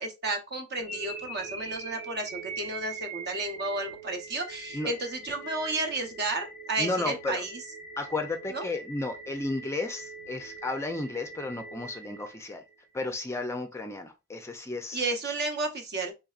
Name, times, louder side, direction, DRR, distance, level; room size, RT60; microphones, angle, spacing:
voice 1, 0.0-7.6 8.5-8.7 14.9-16.1, right 2 dB, 50° right, 0.8 m, -32 dB
sound 1, 0.8-12.8, right 3 dB, 85° right, 1.9 m, -43 dB
voice 2, 6.8-7.4 8.0-12.6 12.9-15.1, left 2 dB, 15° left, 0.4 m, -33 dB
4.0 x 3.2 x 2.4 m
head